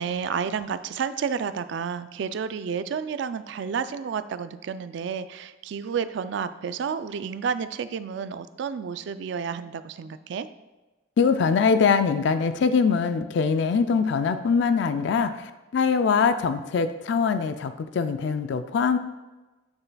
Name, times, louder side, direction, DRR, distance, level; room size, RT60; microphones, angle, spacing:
voice 1, 0.0-10.5, right 6 dB, 65° right, 12 dB, 0.3 m, -30 dB
voice 2, 11.2-19.0, left 5 dB, 60° left, 10 dB, 0.3 m, -23 dB
8.0 x 6.6 x 2.3 m, 1.1 s
head